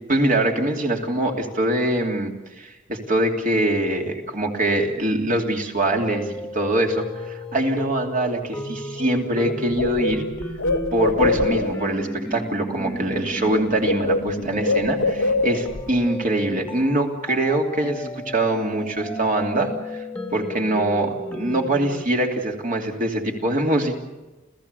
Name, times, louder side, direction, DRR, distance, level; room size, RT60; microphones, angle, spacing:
voice 1, 0.1-10.2 10.9-20.0 20.3-24.0, right 1 dB, 45° right, 2 dB, 2.9 m, -23 dB
sound 1, 6.0-22.1, equal, 5° left, 1.5 m, -34 dB
Bird, 9.0-9.1 9.4-11.9 13.0-13.2 13.5-15.9, left 2 dB, 85° left, 1.0 m, -24 dB
29.0 x 16.0 x 6.8 m, 1.1 s
head